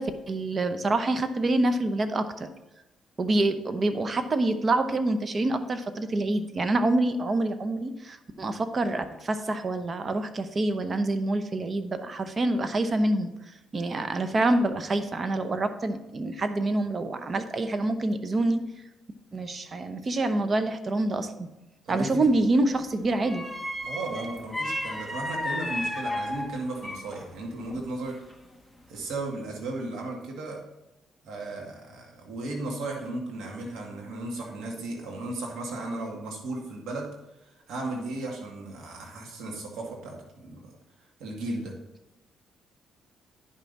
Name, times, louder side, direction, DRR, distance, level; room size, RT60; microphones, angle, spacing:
voice 1, 0.0-2.5 3.2-13.3 13.7-18.7 19.3-21.5 21.9-23.4, right 2 dB, 35° right, 10 dB, 0.8 m, -26 dB
voice 2, 21.9-22.3 23.8-28.2 28.9-30.6 31.2-37.1 37.4-40.7 41.2-41.8, right 2 dB, 80° right, 0 dB, 2.0 m, -35 dB
sound 1, 22.1-22.4 23.2-27.3 27.6-28.6 29.0-29.2, left 1 dB, ahead, 1.0 m, -33 dB
9.9 x 5.8 x 4.1 m, 0.95 s
cardioid pair, 90°, 0 cm